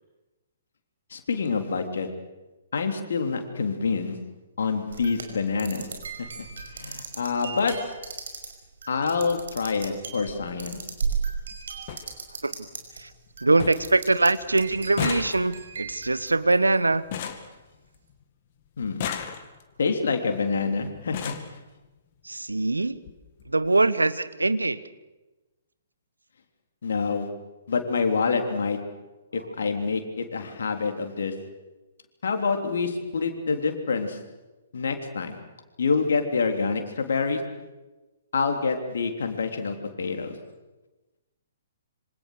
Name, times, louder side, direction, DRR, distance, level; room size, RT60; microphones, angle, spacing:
voice 1, 1.1-2.1 2.7-4.2 4.6-5.9 6.2-6.3 6.7-7.7 8.9-10.8 18.8-19.1 19.8-21.3 26.8-27.3 27.7-28.8 29.3-31.3 32.2-34.2 34.7-35.4 35.8-37.4 38.3-40.4, left 4 dB, 60° left, 5 dB, 3.6 m, -27 dB
sound 1, 4.9-13.0 13.3-14.3 14.6-17.0, right 6 dB, 60° right, 5.4 m, -35 dB
sound 2, 9.9-10.0 11.2-11.3 11.5-11.6 11.9-12.1 12.5-13.0 13.3-13.4 13.6-14.0 14.2-18.2 18.8-19.8 20.6-20.7 21.0-21.6 22.5-22.6 22.9-23.1 23.4-23.5, left 9 dB, 40° left, 2.3 m, -35 dB
voice 2, 13.4-17.0 22.2-23.0 23.5-24.9, right 2 dB, 75° right, 15 dB, 1.2 m, -23 dB
27.0 x 25.5 x 6.6 m, 1.1 s
figure-of-eight pair, 120°, 0 cm